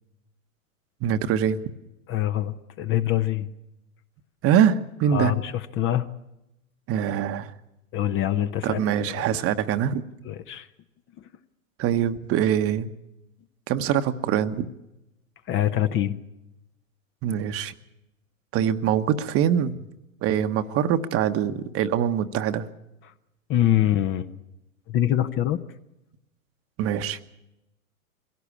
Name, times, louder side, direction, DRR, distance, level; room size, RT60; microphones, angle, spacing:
voice 1, 1.0-1.6 4.4-5.3 6.9-7.5 8.6-10.0 11.8-12.9 13.7-14.7 17.2-17.7 18.5-19.8 20.2-22.7 26.8-27.2, right 9 dB, 35° right, 10 dB, 1.1 m, -23 dB
voice 2, 2.1-3.5 5.1-6.1 7.9-8.8 10.2-10.7 15.5-16.1 23.5-24.3 24.9-25.6, left 12 dB, 30° left, 11 dB, 0.9 m, -24 dB
22.5 x 17.0 x 8.5 m, 0.92 s
hypercardioid pair, 105°, 42 cm